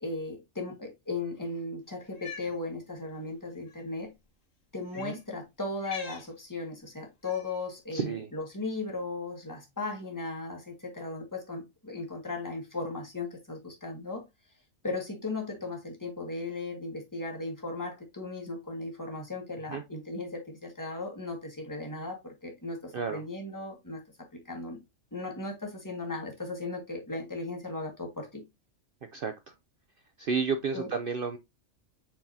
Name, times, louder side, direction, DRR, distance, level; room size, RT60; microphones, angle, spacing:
voice 1, 0.0-4.1 4.7-14.2 14.8-24.0 24.3-24.8 25.1-28.4 30.7-30.9, left 3 dB, 15° left, 1.9 m, -37 dB
Cat, 2.1-2.5 3.6-3.8 4.9-5.2 5.8-6.3 7.2-7.6, left 6 dB, 85° left, 1.8 m, -43 dB
voice 2, 7.9-8.3 19.7-19.8 22.9-23.2 29.1-29.5 30.2-31.4, right 5 dB, 50° right, 0.8 m, -31 dB
7.3 x 4.7 x 2.7 m
omnidirectional pair, 1.3 m